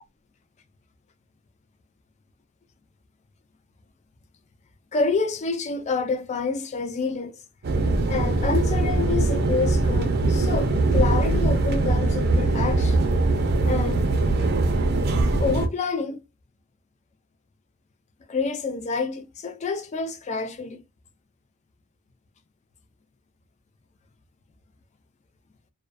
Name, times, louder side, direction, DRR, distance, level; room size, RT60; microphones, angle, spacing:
voice 1, 4.9-7.4 8.1-13.1 13.6-14.0 15.4-16.2 18.3-20.8, left 4 dB, 35° left, 0.3 m, -28 dB
sound 1, 7.6-15.7, right 2 dB, 50° right, 0.5 m, -22 dB
2.2 x 2.2 x 2.5 m
head